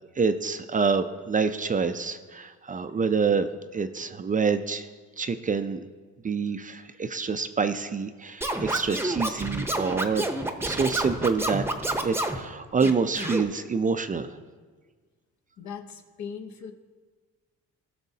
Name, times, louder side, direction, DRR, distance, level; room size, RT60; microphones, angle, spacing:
voice 1, 0.2-4.9 5.2-5.9 6.2-10.3 10.6-11.6 12.0-14.4, right 5 dB, 25° right, 10 dB, 0.4 m, -27 dB
Scratching (performance technique), 8.4-12.4 12.8-13.4, right 1 dB, 10° right, 0.8 m, -29 dB
voice 2, 15.6-16.7, left 7 dB, 65° left, 6 dB, 1.0 m, -39 dB
17.0 x 6.0 x 2.8 m, 1.5 s
cardioid pair, 90°, 30 cm